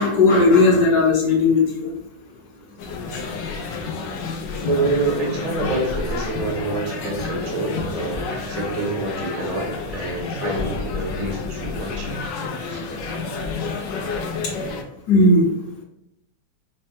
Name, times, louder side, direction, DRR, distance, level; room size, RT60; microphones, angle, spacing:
voice 1, 0.0-1.9 3.1-3.2 15.1-15.5, left 3 dB, 65° left, 0 dB, 1.2 m, -16 dB
sound 1, 2.8-14.8, left 4 dB, 90° left, 0.7 m, -29 dB
voice 2, 4.6-12.3 12.6-12.8, right 2 dB, 65° right, 0 dB, 0.3 m, -27 dB
5.2 x 2.1 x 2.7 m, 0.79 s
omnidirectional pair, 2.0 m